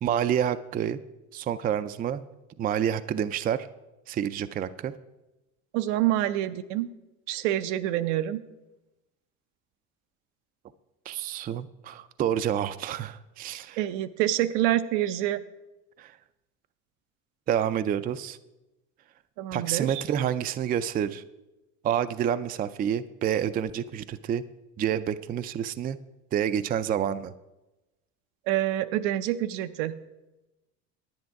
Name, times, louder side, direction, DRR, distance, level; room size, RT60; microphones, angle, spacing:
voice 1, 0.0-1.0 1.3-2.2 2.6-3.7 4.1-4.9 11.1-13.8 16.0-16.2 17.5-18.4 19.5-21.2 21.8-24.4 24.8-26.0 26.3-27.3, right 9 dB, 25° right, 12 dB, 0.3 m, -28 dB
voice 2, 5.7-6.9 7.3-8.4 13.8-15.4 19.4-20.0 28.5-30.0, right 13 dB, 85° right, 12 dB, 0.7 m, -27 dB
10.5 x 9.2 x 4.6 m, 1.0 s
supercardioid pair, 105°, 36 cm